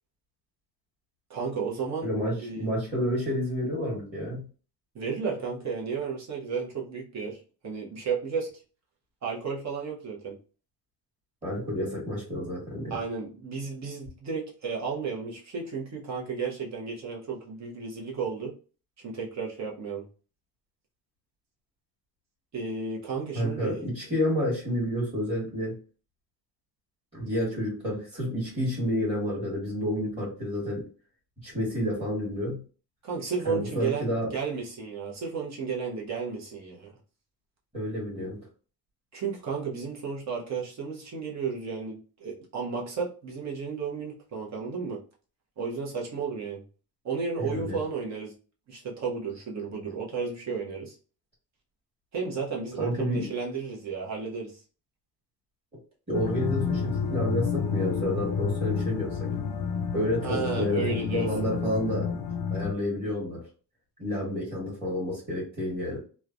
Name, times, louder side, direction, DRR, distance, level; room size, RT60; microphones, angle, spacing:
voice 1, 1.3-2.1 2.4-2.7 4.9-8.5 9.2-10.3 12.9-18.5 19.0-20.0 22.5-23.8 33.0-36.9 39.1-45.0 45.6-46.6 47.0-48.3 48.7-51.0 52.1-54.6 60.2-61.5, right 5 dB, 45° right, -2 dB, 0.8 m, -33 dB
voice 2, 2.0-4.4 11.4-13.0 23.3-25.8 27.1-30.9 31.4-32.6 33.4-34.3 37.7-38.4 47.4-47.8 52.8-53.3 56.1-59.3 59.9-63.4 64.0-66.0, equal, 15° right, -8 dB, 1.3 m, -30 dB
sound 1, 56.1-62.7, left 6 dB, 70° left, 0.5 m, -30 dB
3.1 x 2.1 x 2.4 m, 0.37 s
cardioid pair, 155°, 39 cm